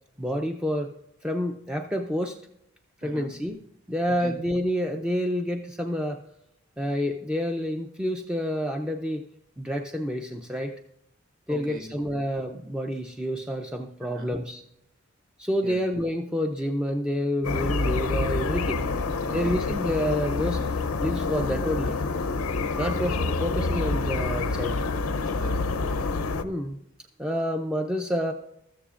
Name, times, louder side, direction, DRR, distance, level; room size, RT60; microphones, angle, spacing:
voice 1, 0.2-0.9 1.2-2.4 3.0-3.6 3.9-6.2 6.8-9.3 9.6-10.7 11.5-14.6 15.4-18.8 19.3-22.0 22.8-24.8 26.4-26.8 27.2-28.3, equal, 5° right, 3 dB, 0.4 m, -28 dB
voice 2, 3.0-3.3 4.2-4.3 11.5-12.2 14.1-14.3 15.6-15.8 18.8-19.6 25.3-26.2, equal, 40° right, 1 dB, 1.6 m, -41 dB
sound 1, 17.4-26.4, left 3 dB, 85° left, 0.6 m, -27 dB
14.0 x 13.5 x 2.5 m, 0.81 s
head